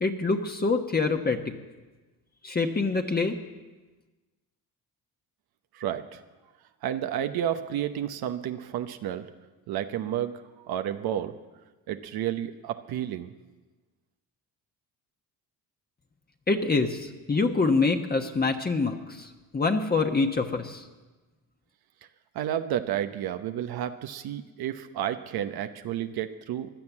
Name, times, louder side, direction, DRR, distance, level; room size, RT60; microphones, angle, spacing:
voice 1, 0.0-1.5 2.4-3.4 16.5-20.8, left 4 dB, 25° left, 4 dB, 1.2 m, -26 dB
voice 2, 5.7-6.2 6.8-9.3 9.7-11.3 11.9-13.3 22.3-26.7, right 10 dB, 75° right, 8 dB, 0.9 m, -31 dB
16.0 x 10.5 x 7.3 m, 1.2 s
cardioid pair, 85°, 37 cm